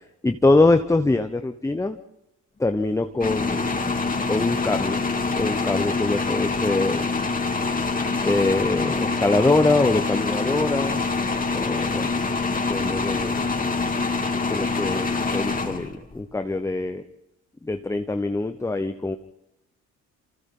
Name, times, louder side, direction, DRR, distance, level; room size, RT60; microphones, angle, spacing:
voice 1, 0.2-2.0 2.6-3.7 4.3-5.1 5.3-7.1 8.2-11.0 11.5-12.1 12.7-13.4 14.5-17.0 17.6-19.2, left 2 dB, 10° left, 8 dB, 0.8 m, -23 dB
sound 1, 3.2-16.2, left 3 dB, 30° left, 2.8 m, -25 dB
28.5 x 24.5 x 3.8 m, 0.91 s
cardioid pair, 90°, 30 cm